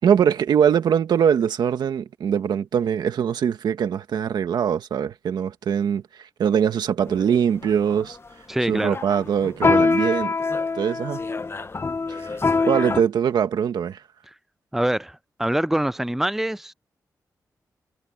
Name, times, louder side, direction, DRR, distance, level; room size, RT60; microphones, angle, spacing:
voice 1, 0.0-6.0 6.4-8.2 8.7-10.3 10.8-11.2 12.2-12.3 12.7-14.0, right 8 dB, 90° right, 1.7 m, -22 dB
sound 1, 7.1-7.3 7.6-8.1 8.8-13.0, left 4 dB, 35° left, 1.0 m, -24 dB
voice 2, 8.5-9.0 14.3-14.4 14.7-16.7, right 1 dB, 5° right, 0.5 m, -24 dB
cardioid pair, 65°, 7 cm